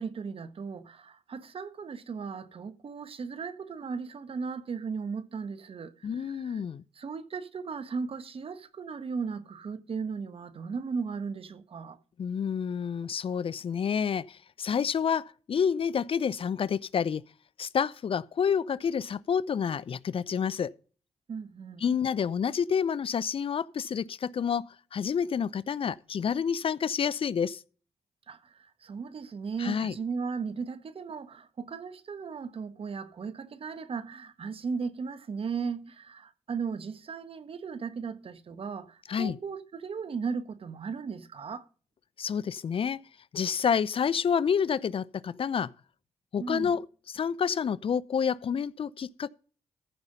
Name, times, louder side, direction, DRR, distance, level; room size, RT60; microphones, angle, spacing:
voice 1, 0.0-6.6 6.9-12.0 21.3-21.8 28.3-41.7 46.4-46.8, right 5 dB, 55° right, 1.4 m, -36 dB
voice 2, 6.0-6.8 12.2-17.2 17.6-20.7 21.8-27.6 29.6-29.9 39.1-39.4 42.2-43.0 43.3-45.7 46.3-49.3, left 7 dB, 55° left, 0.6 m, -29 dB
14.5 x 5.6 x 5.3 m
supercardioid pair, 50°, 11 cm